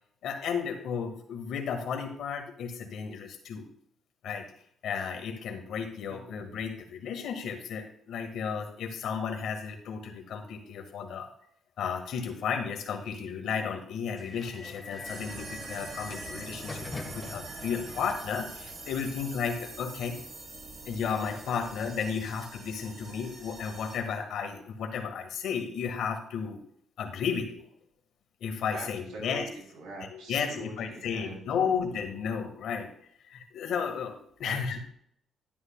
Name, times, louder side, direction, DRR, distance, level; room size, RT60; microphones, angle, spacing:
voice 1, 0.2-3.6 4.2-4.4 4.8-11.3 11.8-20.2 20.9-26.6 27.0-27.7 28.4-29.5 30.1-32.9 33.3-34.8, left 6 dB, 75° left, 5 dB, 1.8 m, -33 dB
sound 1, 14.2-19.8, left 3 dB, 30° left, 1.5 m, -45 dB
sound 2, 15.0-24.0, right 3 dB, 55° right, 3.3 m, -44 dB
voice 2, 28.7-29.4 29.7-31.8 34.4-34.8, right 2 dB, 90° right, -1 dB, 3.7 m, -43 dB
11.5 x 11.0 x 2.4 m, 0.67 s
cardioid pair, 90°, 0 cm